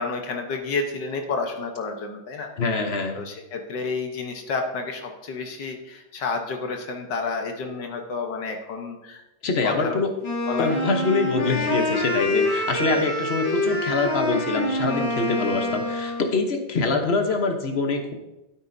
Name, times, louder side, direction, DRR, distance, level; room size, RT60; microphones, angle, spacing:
voice 1, 0.0-2.5 3.1-9.2 9.6-10.0 10.5-10.7 11.5-11.6 12.4-12.5 12.9-13.0, left 4 dB, 65° left, 4 dB, 1.7 m, -30 dB
voice 2, 2.6-3.2 9.4-10.1 10.6-18.1, left 4 dB, 40° left, 4 dB, 1.0 m, -24 dB
Wind instrument woodwind instrument, 10.2-16.4, left 1 dB, 85° left, 2.9 m, -26 dB
12.5 x 8.6 x 2.7 m, 0.98 s
omnidirectional pair, 2.1 m